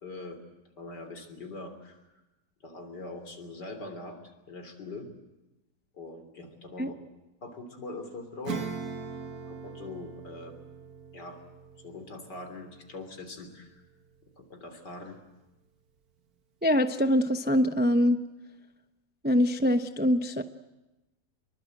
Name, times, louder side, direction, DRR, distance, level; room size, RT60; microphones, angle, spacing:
voice 1, 0.0-0.4 0.8-2.2 2.6-5.1 5.9-7.0 7.4-8.6 9.5-10.5 11.1-11.4 11.8-13.8 14.5-15.2, left 3 dB, 70° left, 6 dB, 3.8 m, -42 dB
Acoustic guitar / Strum, 8.4-14.5, right 6 dB, 55° right, 2.0 m, -41 dB
voice 2, 16.6-18.2 19.2-20.4, equal, 15° right, 8 dB, 0.3 m, -24 dB
25.0 x 22.5 x 7.9 m, 1.0 s
omnidirectional pair, 1.9 m